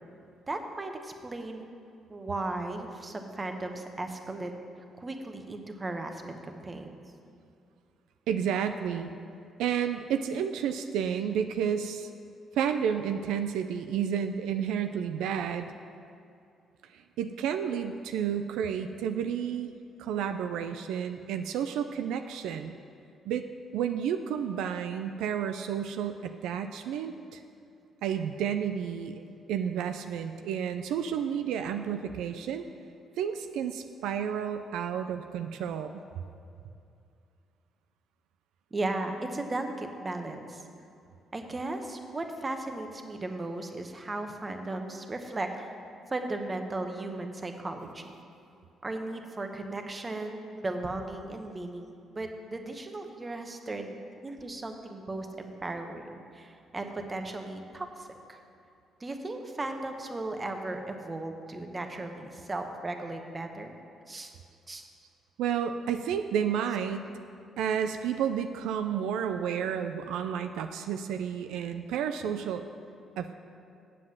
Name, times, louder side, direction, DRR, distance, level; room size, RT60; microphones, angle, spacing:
voice 1, 0.5-1.7 2.1-7.0 38.7-40.6 41.3-45.7 46.1-48.1 48.8-54.0 54.2-58.4 59.0-63.7 64.1-64.3 64.7-64.9 66.7-66.8, right 2 dB, 25° right, 5 dB, 1.0 m, -36 dB
voice 2, 8.3-9.1 9.6-12.1 12.6-15.7 16.9-19.7 20.0-22.7 23.3-23.5 23.7-27.4 28.0-32.7 33.2-35.9 65.4-67.1 67.6-72.6 73.2-73.4, right 8 dB, 90° right, 8 dB, 0.4 m, -31 dB
7.7 x 7.5 x 7.6 m, 2.5 s
cardioid pair, 90°, 0 cm